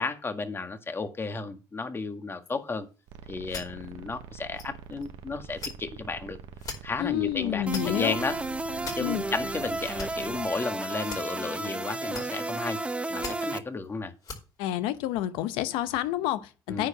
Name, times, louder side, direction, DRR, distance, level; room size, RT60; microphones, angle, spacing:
voice 1, 0.0-2.9 3.3-6.4 6.8-8.4 8.9-12.8 13.1-14.1 16.7-16.9, left 3 dB, 25° left, 1.7 m, -33 dB
sound 1, 2.4-2.5 3.1-3.2 3.4-3.9 4.5-4.7 5.0-5.1 5.5-5.7 6.6-6.8 7.4-8.1 8.8-9.0 9.6-10.1 11.0-11.2 12.1-12.2 12.5-12.9 13.1-13.9 14.2-14.4 14.7-14.8, left 4 dB, 45° left, 4.9 m, -39 dB
sound 2, 3.1-10.5, right 7 dB, 75° right, 1.2 m, -45 dB
voice 2, 7.0-8.2 9.0-9.2 14.6-16.9, left 13 dB, 85° left, 0.8 m, -29 dB
sound 3, 7.7-13.6, right 2 dB, 15° right, 0.9 m, -33 dB
9.5 x 5.0 x 7.7 m
supercardioid pair, 75°, 9 cm